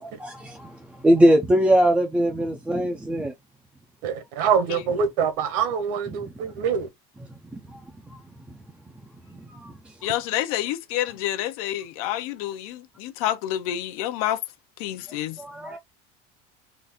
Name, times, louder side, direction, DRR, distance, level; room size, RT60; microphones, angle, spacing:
voice 1, 0.0-3.3 6.2-6.3 7.5-7.8 8.1-8.2 9.5-9.7 15.4-15.8, equal, 5° right, 0.4 m, -21 dB
voice 2, 4.0-6.9, right 7 dB, 65° right, 1.2 m, -24 dB
voice 3, 10.0-14.4 14.8-15.4, left 13 dB, 75° left, 0.6 m, -28 dB
3.9 x 2.5 x 3.5 m
cardioid pair, 180°, 19 cm